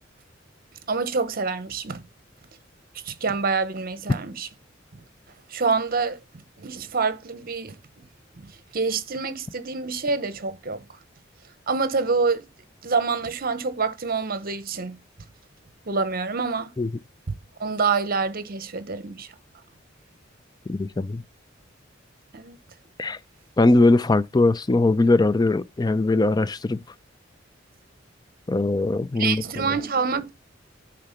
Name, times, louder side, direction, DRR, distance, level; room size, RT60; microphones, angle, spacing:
voice 1, 0.9-2.0 3.0-4.5 4.9-5.0 5.5-8.0 8.4-10.8 11.7-12.4 12.8-15.0 15.9-16.7 17.3-17.4 17.6-19.3 22.3-22.6 29.2-30.3, right 4 dB, 50° right, 0.9 m, -27 dB
voice 2, 20.7-21.2 23.0-23.2 23.6-26.8 28.5-29.4, left 2 dB, 20° left, 0.4 m, -20 dB
10.0 x 3.8 x 5.7 m
head